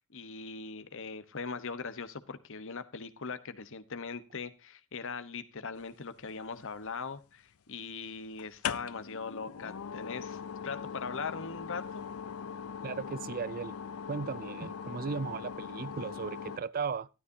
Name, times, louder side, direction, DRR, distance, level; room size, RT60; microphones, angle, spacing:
voice 1, 0.1-12.1, left 5 dB, 65° left, 1.1 m, -40 dB
sound 1, 6.2-7.0 8.4-16.6, left 7 dB, 80° left, 0.5 m, -40 dB
voice 2, 12.8-13.7 14.1-17.1, right 5 dB, 40° right, 0.4 m, -36 dB
12.5 x 12.0 x 2.8 m
head